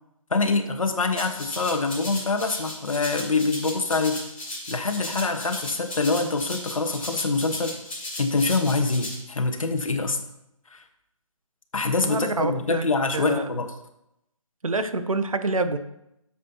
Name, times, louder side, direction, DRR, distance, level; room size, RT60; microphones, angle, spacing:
voice 1, 0.3-4.3 4.7-7.8 8.2-10.2 10.7-10.8 11.7-13.7, left 3 dB, 70° left, 5 dB, 1.5 m, -25 dB
Rattle (instrument), 1.1-9.1, left 1 dB, 5° left, 3.8 m, -36 dB
voice 2, 12.0-12.9 13.1-13.5 14.6-15.8, right 3 dB, 75° right, 10 dB, 1.0 m, -26 dB
13.0 x 7.5 x 3.0 m, 0.83 s
figure-of-eight pair, 155°, 18 cm